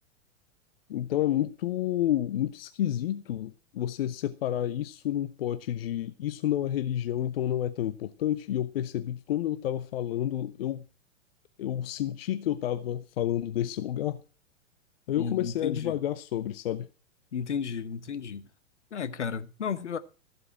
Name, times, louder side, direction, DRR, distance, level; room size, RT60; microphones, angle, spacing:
voice 1, 0.9-10.8 11.6-14.2 15.1-16.9, left 12 dB, 50° left, 0.8 m, -30 dB
voice 2, 15.2-16.0 17.3-18.5 18.9-20.0, left 6 dB, 65° left, 1.2 m, -33 dB
14.5 x 8.0 x 6.0 m
figure-of-eight pair, 100°, 37 cm